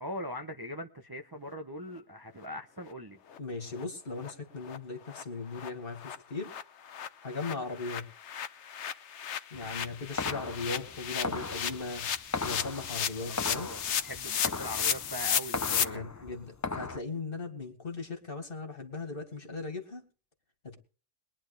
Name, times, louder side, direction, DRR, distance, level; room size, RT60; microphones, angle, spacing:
voice 1, 0.0-3.2 13.1-16.2, left 1 dB, 20° right, 0.8 m, -41 dB
sound 1, 2.9-3.0 3.3-3.4 3.7-3.8 4.2-4.3 4.6-4.8 5.1-5.2 5.5-5.7 5.9-15.8, left 8 dB, 70° left, 1.1 m, -34 dB
voice 2, 3.4-6.5 7.2-8.1 9.5-12.1 12.4-13.7 15.7-20.0 20.6-20.8, left 3 dB, 50° left, 2.4 m, -38 dB
sound 2, 9.5-17.0, left 3 dB, 20° left, 0.4 m, -38 dB
22.5 x 10.5 x 3.4 m
omnidirectional pair, 1.2 m